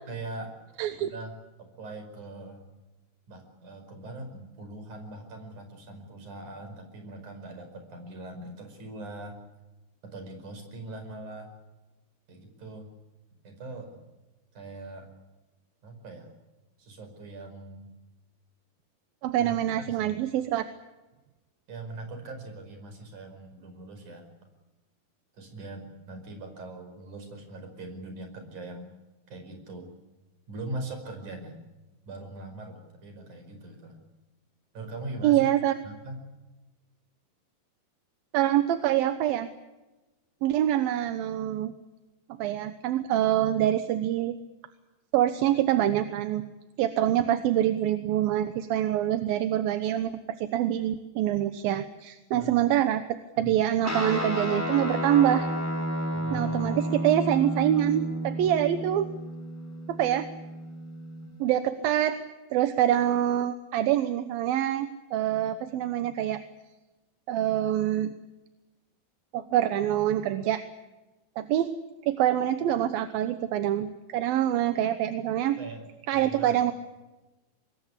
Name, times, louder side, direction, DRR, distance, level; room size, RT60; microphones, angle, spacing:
voice 1, 0.1-0.5 1.0-2.6 3.3-9.4 10.0-11.5 12.3-12.9 13.4-14.0 14.5-15.1 15.8-16.3 16.8-17.9 19.4-20.1 21.7-24.3 25.3-28.9 29.3-29.9 30.5-31.6 32.1-34.0 34.7-35.5 35.8-36.2 52.3-52.6 53.4-53.5 56.1-56.8 75.6-76.7, right 2 dB, 50° right, 6 dB, 6.4 m, -41 dB
voice 2, 0.8-1.1 19.2-20.6 35.2-35.7 38.3-39.5 40.4-41.7 42.4-44.4 45.1-46.4 46.8-50.1 50.4-53.0 53.4-55.5 56.3-59.1 59.9-60.3 61.4-62.2 62.5-66.4 67.3-68.1 69.3-70.6 71.4-71.7 72.0-75.6 76.1-76.7, right 11 dB, 70° right, 10 dB, 2.7 m, -25 dB
Guitar, 53.8-61.5, equal, 5° left, 4.7 m, -32 dB
25.0 x 21.5 x 8.4 m, 1.1 s
omnidirectional pair, 4.6 m